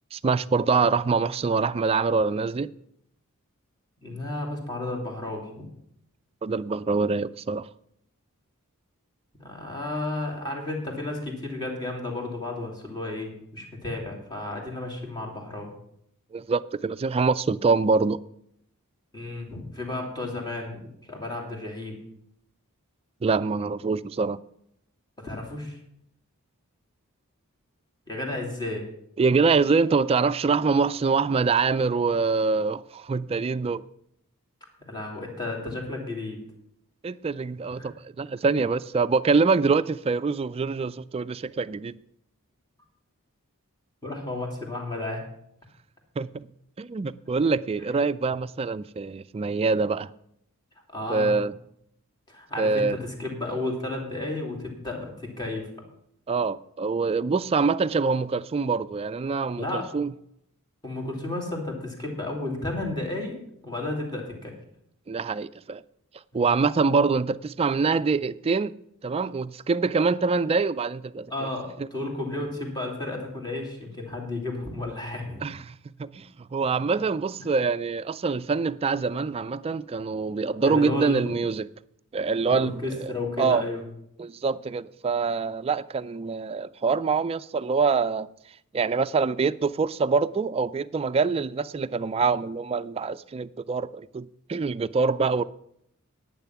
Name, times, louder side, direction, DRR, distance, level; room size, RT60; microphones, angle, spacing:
voice 1, 0.1-2.7 6.4-7.7 16.3-18.2 23.2-24.4 29.2-33.8 37.0-42.0 46.2-46.5 46.8-50.1 51.1-51.5 52.6-53.0 56.3-60.1 65.1-65.8 66.3-68.7 69.0-71.3 71.8-71.9 75.4-75.7 76.0-81.7 82.1-83.1 83.4-83.6 84.2-88.3 88.7-95.4, right 4 dB, 25° right, 0.3 m, -25 dB
voice 2, 4.0-5.6 9.4-15.7 19.1-22.0 25.2-25.8 28.1-28.9 34.8-36.4 37.8-37.9 44.0-45.3 50.9-51.4 52.3-55.7 59.6-59.9 60.8-63.4 63.6-64.5 66.3-66.4 71.3-75.5 77.4-77.5 80.6-81.4 82.5-83.8, left 2 dB, 20° left, 2.8 m, -33 dB
10.5 x 9.0 x 5.9 m
head